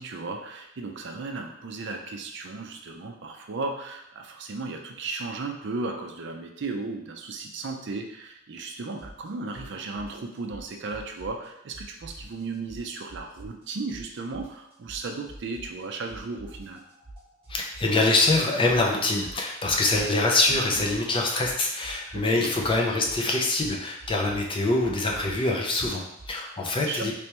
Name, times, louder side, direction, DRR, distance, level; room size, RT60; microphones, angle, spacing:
voice 1, 0.0-16.8 20.7-20.8 22.1-22.5 26.9-27.1, right 3 dB, 60° right, 3 dB, 0.5 m, -35 dB
sound 1, 9.0-9.3 9.5-11.5 11.7-13.6 13.9-15.8 16.1-20.2 20.4-26.3, right 1 dB, 30° right, 1.2 m, -46 dB
voice 2, 17.5-27.1, left 2 dB, 25° left, 0 dB, 0.5 m, -24 dB
3.3 x 3.3 x 2.9 m, 0.78 s
head